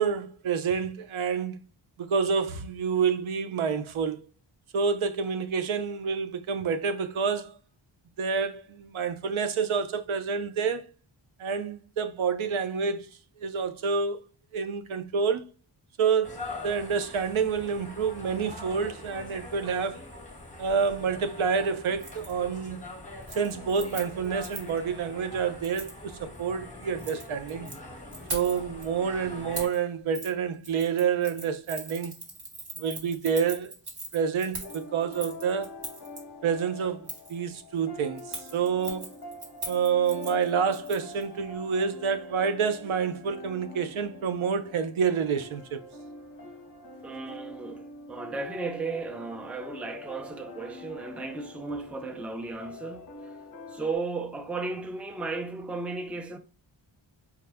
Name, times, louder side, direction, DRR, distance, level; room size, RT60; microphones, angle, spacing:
voice 1, 0.0-1.6 2.0-4.2 4.7-7.5 8.2-10.9 11.4-13.1 13.4-14.2 14.5-15.4 16.0-20.1 20.6-22.8 23.4-27.7 28.3-32.1 32.8-33.7 34.1-35.7 36.4-39.1 39.7-45.8, right 6 dB, 80° right, 0.6 m, -28 dB
sound 1, 16.2-29.7, left 2 dB, 15° left, 1.0 m, -43 dB
Keys jangling, 22.0-22.3 22.7-22.9 23.2-24.8 25.6-26.0 26.8-27.8 28.1-28.8 29.5-29.8 30.1-30.3 30.6-36.2 37.1-37.4 38.2-41.2 41.5-41.6, right 2 dB, 50° right, 1.4 m, -40 dB
sound 2, 34.6-54.0, left 3 dB, 45° left, 0.7 m, -45 dB
voice 2, 47.0-53.1 53.7-56.4, right 3 dB, 5° right, 0.4 m, -35 dB
4.7 x 2.1 x 3.4 m
wide cardioid pair, 105°, 48 cm